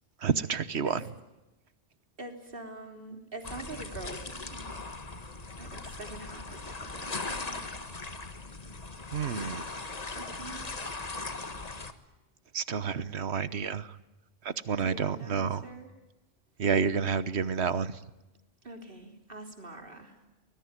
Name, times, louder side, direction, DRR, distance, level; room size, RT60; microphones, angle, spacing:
voice 1, 0.2-1.0 9.1-9.6 12.5-13.8 14.7-15.6 16.6-17.9, right 6 dB, 65° right, 14 dB, 1.3 m, -29 dB
voice 2, 2.2-4.7 5.6-7.6 10.1-10.6 14.8-15.9 18.6-20.1, right 2 dB, 50° right, 4 dB, 3.7 m, -44 dB
sound 1, 3.4-11.9, left 3 dB, 35° left, 1.5 m, -39 dB
24.5 x 21.0 x 9.7 m, 1.0 s
omnidirectional pair, 1.2 m